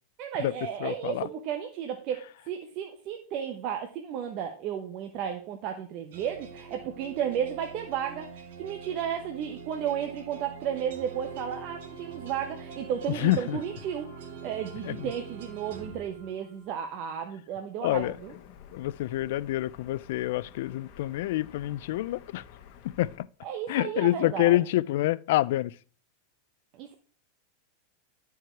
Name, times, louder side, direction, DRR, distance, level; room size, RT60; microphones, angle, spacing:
voice 1, 0.2-14.1 14.4-18.3 23.4-24.6 26.7-26.9, right 9 dB, 45° right, 1.0 m, -33 dB
voice 2, 0.8-1.2 13.1-13.6 14.8-15.1 17.8-18.2 18.7-22.4 22.8-23.3 23.7-25.8, left 16 dB, 65° left, 0.4 m, -27 dB
sound 1, 6.1-16.8, right 5 dB, 75° right, 2.2 m, -44 dB
sound 2, 17.9-23.2, left 8 dB, 50° left, 1.2 m, -51 dB
12.0 x 4.7 x 4.5 m
supercardioid pair, 140°, 0 cm